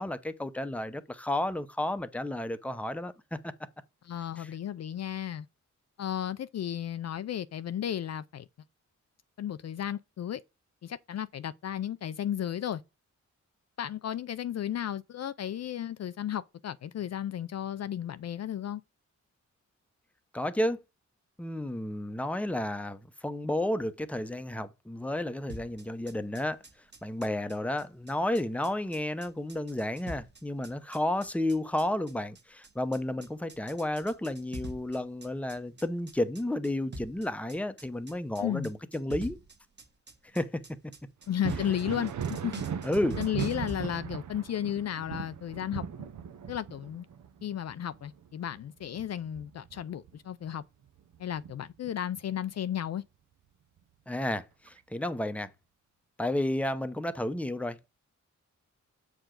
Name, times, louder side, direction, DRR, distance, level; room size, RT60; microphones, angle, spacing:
voice 1, 0.0-3.5 4.4-4.5 20.3-20.8 21.4-26.6 27.0-39.4 40.3-40.6 42.8-43.2 54.1-55.5 56.2-57.9, left 1 dB, 5° left, 0.7 m, -32 dB
voice 2, 4.1-5.5 6.0-8.5 9.4-10.4 10.8-12.8 13.8-18.8 38.4-38.7 41.3-42.1 42.4-42.6 43.2-45.8 46.5-47.1 47.4-50.6 51.2-53.0, left 10 dB, 60° left, 0.4 m, -34 dB
sound 1, 25.5-43.8, right 1 dB, 35° right, 1.3 m, -45 dB
Thunder, 41.3-50.6 51.0-52.2 53.8-53.9 54.7-54.8, right 8 dB, 70° right, 0.7 m, -38 dB
7.7 x 4.8 x 3.8 m
wide cardioid pair, 95°, 30 cm